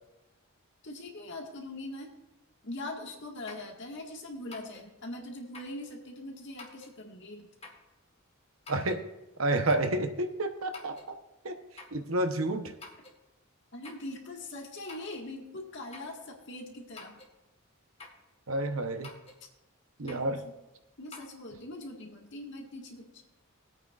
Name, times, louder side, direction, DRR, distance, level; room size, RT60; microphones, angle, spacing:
voice 1, 0.8-2.1 2.6-7.5 13.7-17.2 20.1-20.5 21.0-23.2, left 1 dB, 60° left, 0 dB, 1.9 m, -42 dB
sound 1, 3.5-3.7 4.5-4.9 5.5-5.8 6.6-7.0 7.6-7.9 8.7-9.0 9.7-10.0 10.7-11.1 11.8-12.0 12.8-13.2 13.8-14.1 14.9-15.3 15.9-16.2 17.0-17.3 18.0-18.3 19.0-19.4 20.1-20.3 21.1-21.3, left 3 dB, 30° left, 1.6 m, -49 dB
voice 2, 8.7-9.0 9.4-11.2 11.4-11.6 11.9-12.7 18.5-19.1 20.0-20.4, right 2 dB, 75° right, 7 dB, 1.0 m, -30 dB
19.0 x 8.8 x 2.5 m, 0.98 s
head